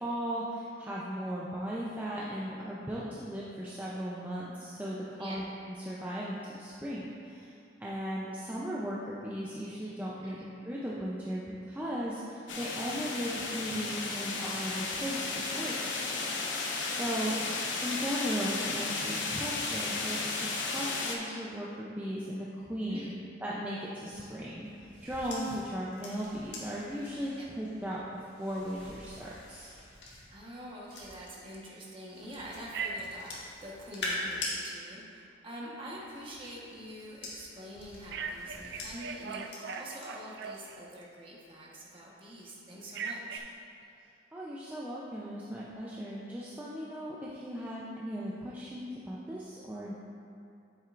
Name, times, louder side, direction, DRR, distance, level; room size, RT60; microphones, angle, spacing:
voice 1, 0.0-7.5 7.8-10.4 10.6-15.2 15.5-15.7 16.1-16.3 16.9-17.4 17.8-20.2 20.6-23.1 23.4-29.7 44.3-49.9, equal, 10° right, -7 dB, 0.6 m, -37 dB
sound 1, 12.5-21.2, left 3 dB, 90° left, 0.8 m, -34 dB
voice 2, 17.1-17.6 22.9-23.2 27.4-27.5 30.3-43.4, equal, 30° right, -4 dB, 1.3 m, -46 dB
sound 2, 24.0-31.5 32.1-34.6 35.8-40.1 40.4-40.8, left 2 dB, 65° left, 1.7 m, -44 dB
Telephone, 32.7-33.3 38.1-41.0 42.9-43.4, right 5 dB, 60° right, 0.4 m, -39 dB
8.9 x 7.5 x 2.5 m, 2.5 s
head